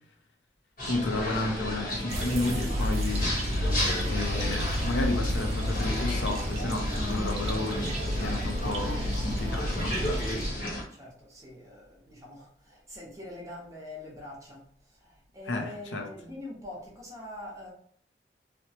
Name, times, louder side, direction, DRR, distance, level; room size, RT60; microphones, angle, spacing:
sound 1, 0.8-10.8, equal, 50° left, 0.9 m, -34 dB
voice 1, 0.9-3.4 4.1-10.0 15.5-16.1, left 2 dB, 80° left, 0.5 m, -32 dB
sound 2, 2.1-10.5, equal, 35° right, 0.4 m, -31 dB
voice 2, 10.9-14.6 14.9-17.7, left 1 dB, 20° right, 0.8 m, -44 dB
2.9 x 2.1 x 2.8 m
head